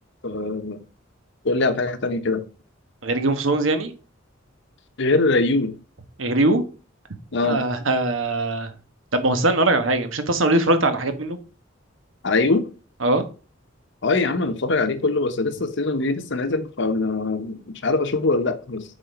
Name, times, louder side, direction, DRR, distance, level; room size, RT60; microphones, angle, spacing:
voice 1, 0.2-0.8 1.4-2.4 5.0-5.7 7.3-7.6 12.2-12.7 14.0-18.8, left 3 dB, 65° left, 0.9 m, -22 dB
voice 2, 3.0-3.9 6.2-6.6 7.4-8.7 9.1-11.4 13.0-13.2, right 2 dB, 85° right, 1.3 m, -21 dB
7.5 x 4.0 x 5.2 m
head